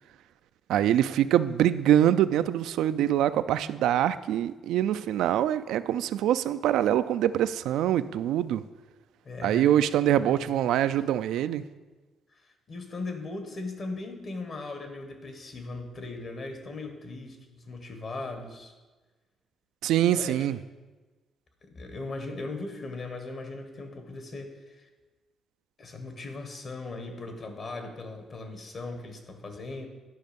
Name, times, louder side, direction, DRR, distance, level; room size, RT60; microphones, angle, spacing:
voice 1, 0.7-8.6 9.4-11.6 19.8-20.6, right 11 dB, 85° right, 13 dB, 0.3 m, -24 dB
voice 2, 9.2-9.8 10.3-11.0 12.3-18.7 20.1-20.5 21.6-24.9 25.8-29.9, left 3 dB, 45° left, 6 dB, 1.5 m, -39 dB
11.5 x 5.3 x 5.2 m, 1.2 s
cardioid pair, 105°, 0 cm